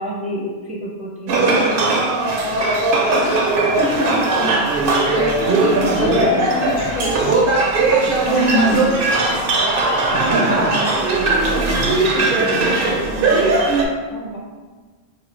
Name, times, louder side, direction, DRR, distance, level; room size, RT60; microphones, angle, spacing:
voice 1, 0.0-1.9 7.9-8.9 10.2-13.7 14.1-14.4, right 1 dB, 10° right, -4 dB, 0.5 m, -29 dB
sound 1, 1.3-13.9, right 2 dB, 65° right, 0.8 m, -18 dB
voice 2, 3.2-4.7 4.9-7.4 8.3-9.0, left 2 dB, 65° left, 0 dB, 0.7 m, -25 dB
3.2 x 2.3 x 4.3 m, 1.4 s
omnidirectional pair, 1.0 m